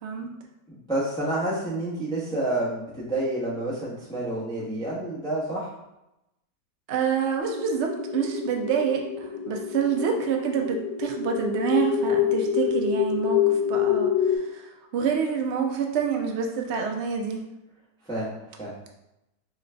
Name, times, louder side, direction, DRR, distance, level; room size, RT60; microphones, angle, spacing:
voice 1, 0.0-0.3 6.9-17.4, right 6 dB, 75° right, 3 dB, 0.6 m, -27 dB
voice 2, 0.7-5.8 18.1-18.9, right 1 dB, 5° left, -7 dB, 0.6 m, -29 dB
sound 1, 7.4-14.4, left 9 dB, 80° left, 1.2 m, -26 dB
3.8 x 3.1 x 3.3 m, 0.90 s
omnidirectional pair, 1.8 m